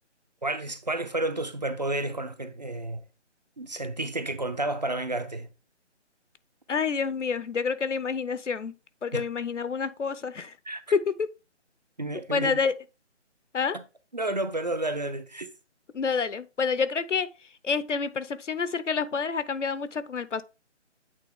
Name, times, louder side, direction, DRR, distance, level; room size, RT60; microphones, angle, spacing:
voice 1, 0.4-3.0 3.6-5.5 9.1-9.2 10.7-10.8 12.0-12.6 13.7-13.8 14.1-15.5, right 2 dB, 40° right, 0.4 m, -31 dB
voice 2, 6.7-8.7 9.0-10.6 10.9-11.3 12.3-12.7 13.5-13.8 15.9-17.3 17.6-20.4, left 5 dB, 80° left, 0.7 m, -28 dB
8.2 x 3.5 x 3.5 m
figure-of-eight pair, 155°, 36 cm